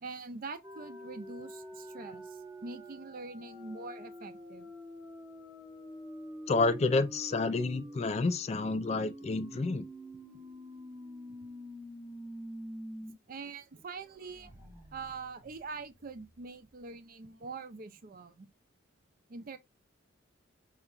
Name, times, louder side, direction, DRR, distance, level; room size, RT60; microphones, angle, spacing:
voice 1, 0.0-4.7 13.3-14.6 14.9-18.5 19.3-19.6, right 4 dB, 45° right, 0.5 m, -44 dB
sound 1, 0.6-13.1 13.5-13.6 13.9-16.6, equal, 15° right, 0.8 m, -47 dB
voice 2, 6.5-9.8, left 3 dB, 35° left, 0.3 m, -29 dB
4.4 x 2.8 x 2.4 m
head